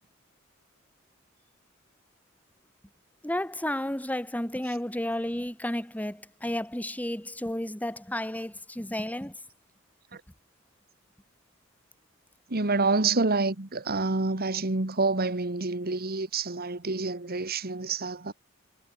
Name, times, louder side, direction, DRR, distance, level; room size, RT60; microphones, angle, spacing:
voice 1, 3.2-9.3, left 1 dB, 5° left, 1.8 m, -32 dB
voice 2, 12.5-18.3, right 3 dB, 50° right, 1.8 m, -28 dB
head